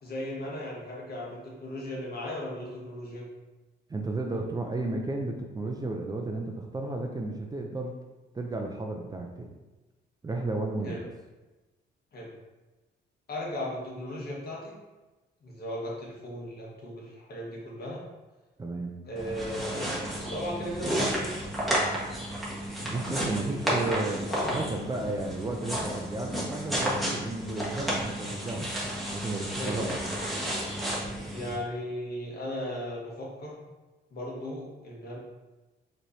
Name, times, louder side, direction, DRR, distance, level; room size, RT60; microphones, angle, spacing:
voice 1, 0.0-3.3 10.8-11.0 12.1-12.3 13.3-14.8 15.4-18.0 19.1-21.5 23.1-23.8 24.3-24.6 29.6-29.8 31.3-33.7 34.1-35.2, left 1 dB, 50° left, -4 dB, 1.4 m, -37 dB
voice 2, 3.9-7.9 8.3-9.6 10.2-11.1 18.6-19.0 22.8-28.7 29.1-30.2, right 2 dB, 20° right, 2 dB, 0.4 m, -33 dB
sound 1, 19.2-31.6, right 1 dB, ahead, 1.3 m, -32 dB
4.4 x 3.2 x 2.7 m, 1.1 s
cardioid pair, 90°, 20 cm